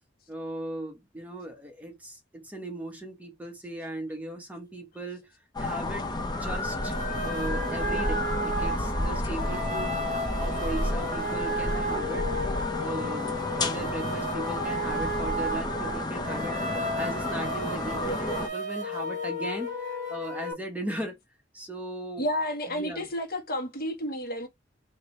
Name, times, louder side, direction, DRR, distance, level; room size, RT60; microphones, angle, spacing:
voice 1, 0.3-5.3 5.6-12.3 12.8-21.2 21.5-22.3 22.7-23.1, right 1 dB, 10° right, 1.1 m, -38 dB
sound 1, 5.5-18.5, left 2 dB, 25° left, 0.8 m, -31 dB
sound 2, 6.8-20.5, right 1 dB, 45° right, 1.5 m, -33 dB
voice 2, 22.2-24.5, left 1 dB, 55° left, 1.4 m, -31 dB
4.9 x 2.9 x 3.1 m
head